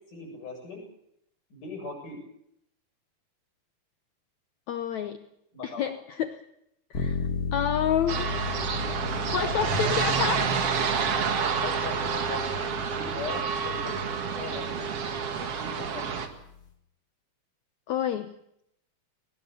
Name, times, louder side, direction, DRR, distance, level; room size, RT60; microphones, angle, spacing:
voice 1, 0.1-0.8 1.5-2.2 5.5-5.9 7.2-7.5 11.6-14.9 15.4-16.2, left 3 dB, 50° left, 2 dB, 8.6 m, -40 dB
voice 2, 4.7-5.3 5.6-6.4 6.9-8.3 9.2-10.6 17.9-18.3, left 9 dB, 75° left, 10 dB, 1.7 m, -29 dB
sound 1, 6.9-16.7, left 5 dB, 30° left, 1.9 m, -36 dB
sound 2, 8.1-16.3, right 6 dB, 45° right, 2.3 m, -29 dB
20.5 x 19.5 x 8.4 m, 0.77 s
omnidirectional pair, 4.6 m